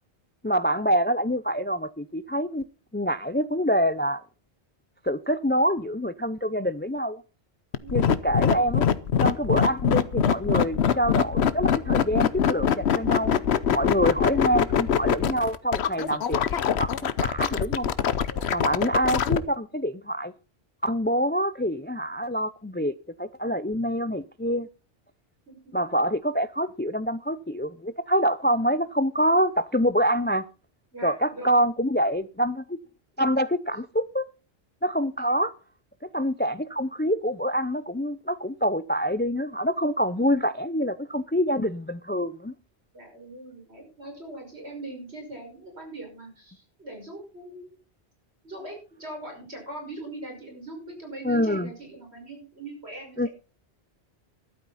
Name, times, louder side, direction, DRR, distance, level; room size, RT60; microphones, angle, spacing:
voice 1, 0.4-2.6 2.9-4.2 5.0-7.2 7.9-8.9 9.2-16.4 16.8-16.9 17.2-17.9 18.5-20.3 20.8-22.9 23.2-24.7 25.7-30.4 31.0-32.8 33.2-34.2 34.8-35.5 36.1-42.5 51.2-51.7 53.2-53.3, equal, 15° left, 0.3 m, -26 dB
sound 1, 7.7-19.4, left 8 dB, 75° left, 1.1 m, -23 dB
voice 2, 30.9-31.6 42.9-47.8 48.4-53.3, right 2 dB, 75° right, 6.2 m, -41 dB
13.5 x 12.0 x 4.1 m
omnidirectional pair, 1.1 m